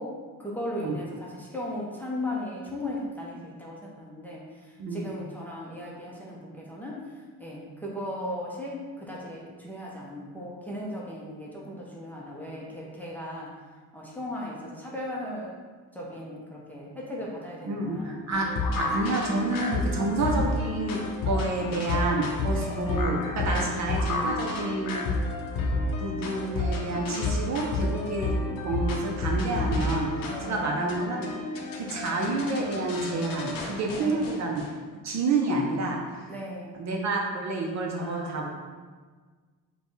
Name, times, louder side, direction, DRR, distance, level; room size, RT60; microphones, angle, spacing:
voice 1, 0.0-7.0 7.4-13.6 13.9-15.5 15.9-18.2 22.5-22.9 23.4-23.8 30.3-30.8 34.0-34.4 36.3-36.8 37.9-38.5, left 1 dB, 5° left, -5 dB, 0.6 m, -37 dB
voice 2, 17.7-18.5 18.7-25.1 26.0-28.3 28.6-31.3 31.7-34.6 35.0-36.3 36.8-38.5, right 2 dB, 50° right, 0 dB, 0.6 m, -29 dB
sound 1, 18.3-34.7, left 2 dB, 70° left, 0.7 m, -30 dB
5.0 x 2.3 x 3.1 m, 1.5 s
cardioid pair, 120°, 36 cm